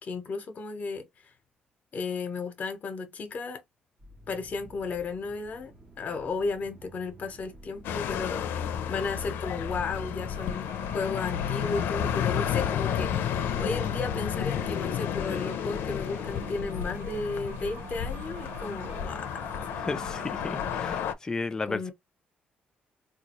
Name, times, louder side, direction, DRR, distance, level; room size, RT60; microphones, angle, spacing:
voice 1, 0.0-1.1 1.9-3.6 4.3-10.7 10.9-19.3 21.6-21.9, left 4 dB, 45° left, 1.0 m, -34 dB
sound 1, 4.0-9.9, right 2 dB, 35° right, 1.0 m, -51 dB
sound 2, 7.8-21.1, left 9 dB, 90° left, 0.5 m, -31 dB
sound 3, 10.3-21.0, right 7 dB, 85° right, 0.7 m, -46 dB
voice 2, 19.9-21.9, left 3 dB, 20° left, 0.4 m, -34 dB
3.9 x 2.4 x 3.0 m
cardioid pair, 135°, 4 cm